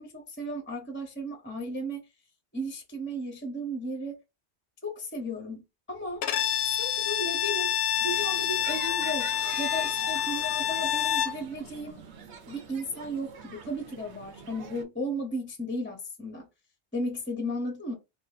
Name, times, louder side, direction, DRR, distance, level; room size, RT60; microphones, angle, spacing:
voice 1, 0.0-2.0 2.5-4.2 4.8-5.6 5.9-6.2 6.7-7.8 8.0-12.0 12.5-16.5 16.9-17.9, equal, 15° left, 0.6 m, -35 dB
Bowed string instrument, 6.2-11.4, left 10 dB, 70° left, 0.8 m, -28 dB
sound 1, 7.9-14.8, right 6 dB, 80° right, 1.0 m, -45 dB
3.6 x 2.0 x 3.9 m
omnidirectional pair, 1.1 m